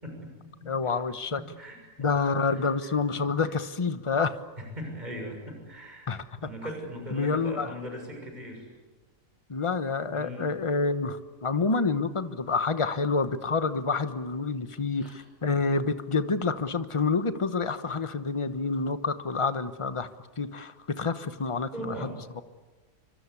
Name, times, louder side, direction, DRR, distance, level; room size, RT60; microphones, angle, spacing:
voice 1, 0.0-1.0 1.3-2.1 2.5-3.2 4.6-6.1 6.4-8.7 10.1-10.5 14.9-15.2 21.7-22.2, equal, 25° right, 2 dB, 6.8 m, -40 dB
voice 2, 0.7-1.4 2.0-4.4 6.1-6.5 7.1-7.7 9.5-20.1 20.4-22.4, left 4 dB, 20° left, 11 dB, 0.9 m, -28 dB
27.5 x 25.0 x 8.5 m, 1.3 s
omnidirectional pair, 1.8 m